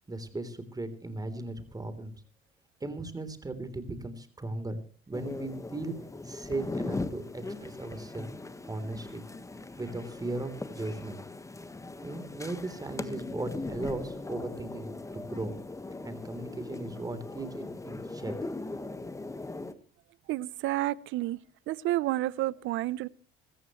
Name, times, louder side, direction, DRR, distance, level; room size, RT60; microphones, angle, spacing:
voice 1, 0.1-2.1 2.8-4.8 5.1-5.9 6.2-8.3 8.6-9.2 9.8-11.2 12.0-15.5 16.0-18.3, right 2 dB, 20° right, 3.5 m, -37 dB
sound 1, 5.1-19.7, left 2 dB, 15° left, 1.4 m, -39 dB
voice 2, 20.3-21.4 21.7-23.1, right 16 dB, 80° right, 0.7 m, -30 dB
26.5 x 14.5 x 3.1 m
cardioid pair, 95°, 20 cm